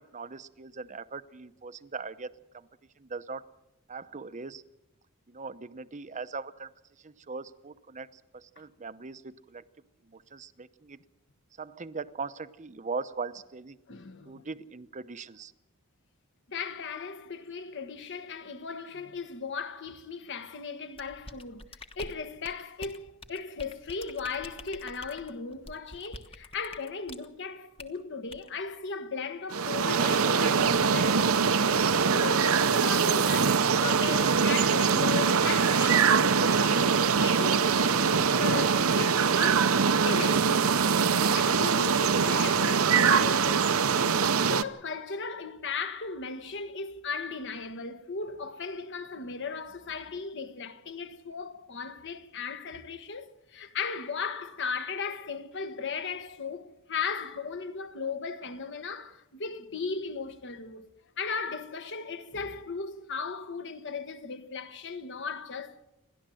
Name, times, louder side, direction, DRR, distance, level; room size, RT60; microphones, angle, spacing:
voice 1, 0.0-2.6 3.0-3.4 3.9-4.6 5.3-6.7 7.0-8.1 8.6-9.6 10.1-11.0 11.6-13.8 14.3-15.5, right 4 dB, 35° right, 0.7 m, -40 dB
voice 2, 13.9-14.5 16.5-21.6 22.0-31.8 32.1-40.7 41.3-44.2 44.5-60.9 61.2-65.8, left 5 dB, 55° left, 1.3 m, -37 dB
sound 1, 21.0-27.3 27.8-28.0 28.3-28.5, left 2 dB, 25° left, 1.2 m, -45 dB
sound 2, 29.5-44.6, right 6 dB, 70° right, 0.8 m, -23 dB
29.0 x 11.5 x 7.7 m
head